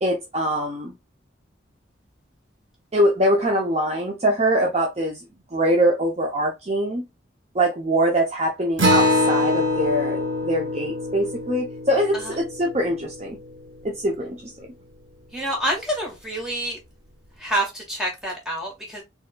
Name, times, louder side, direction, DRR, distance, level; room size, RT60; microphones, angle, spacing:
voice 1, 0.0-0.9 2.9-5.2 5.5-7.0 7.5-13.4 13.8-14.4, right 1 dB, 35° right, 0.6 m, -23 dB
Acoustic guitar, 8.8-13.7, left 1 dB, 85° right, 1.4 m, -24 dB
voice 2, 15.3-16.8 17.4-19.0, right 1 dB, 5° right, 1.8 m, -27 dB
4.4 x 2.9 x 2.3 m
head